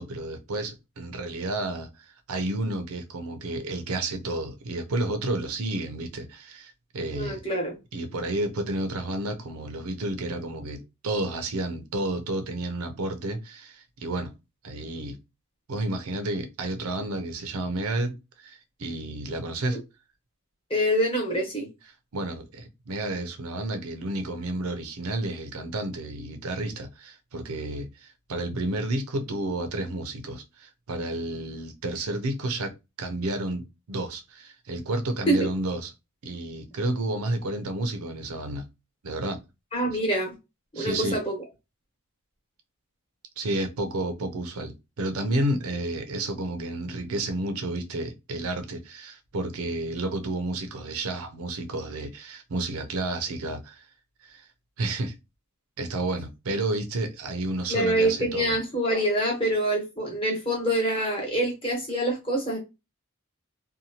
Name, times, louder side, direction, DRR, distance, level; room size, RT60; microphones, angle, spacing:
voice 1, 0.0-1.9 2.3-7.4 7.9-14.3 14.6-15.2 15.7-19.8 22.1-35.9 36.2-38.6 39.0-39.4 40.7-41.2 43.4-53.9 54.2-54.4 54.8-55.1 55.8-58.6, right 2 dB, 85° right, 0.6 m, -31 dB
voice 2, 7.1-7.8 20.7-21.7 35.3-35.4 39.7-40.3 40.7-41.4 57.7-62.6, right 1 dB, 25° left, 1.1 m, -25 dB
2.7 x 2.2 x 2.8 m
head